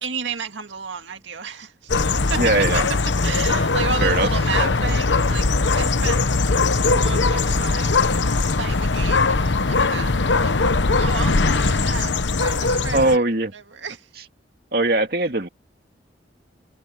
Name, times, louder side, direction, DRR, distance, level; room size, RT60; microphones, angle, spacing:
voice 1, 0.0-1.9 2.3-2.4 3.2-5.5 5.7-6.3 6.8-8.0 8.5-10.1 10.4-10.5 11.0-12.1 12.4-13.2 13.5-14.1, right 5 dB, 90° right, 2.1 m, -32 dB
sound 1, 1.9-13.2, left 3 dB, 80° left, 1.0 m, -20 dB
voice 2, 2.4-2.8 4.0-4.3 4.5-4.7 12.9-13.5 14.7-15.5, right 2 dB, 55° right, 2.3 m, -20 dB
head